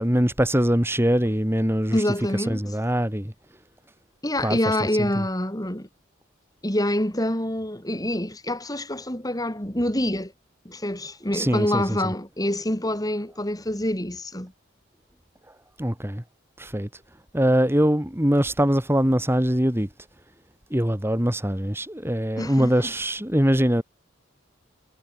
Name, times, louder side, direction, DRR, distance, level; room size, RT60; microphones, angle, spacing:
voice 1, 0.0-2.0 2.5-3.3 4.4-4.6 11.3-12.1 15.8-16.2 16.6-16.9 17.3-19.9 20.7-23.8, equal, 10° right, 2.8 m, -22 dB
voice 2, 1.9-2.6 4.2-5.9 6.6-10.3 10.6-14.5 22.4-22.9, left 1 dB, 20° left, 4.4 m, -26 dB
head